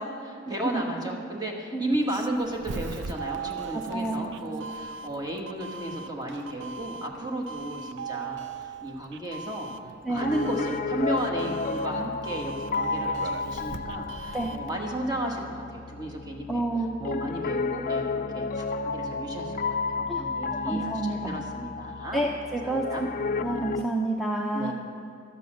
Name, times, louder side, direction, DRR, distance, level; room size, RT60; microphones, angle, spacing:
voice 1, 0.0-9.7 10.1-16.6 17.0-22.2 22.6-23.0 24.5-24.7, right 1 dB, 20° right, 0 dB, 1.5 m, -34 dB
Doorbell, 1.9-14.7, right 5 dB, 65° right, 0.5 m, -39 dB
voice 2, 3.7-4.4 10.0-10.3 14.3-14.5 16.5-17.0 20.1-21.4 22.1-23.1 23.4-24.7, right 2 dB, ahead, -1 dB, 0.6 m, -29 dB
Piano, 10.1-23.9, left 4 dB, 45° left, 0.3 m, -32 dB
12.5 x 8.2 x 6.4 m, 2.5 s
head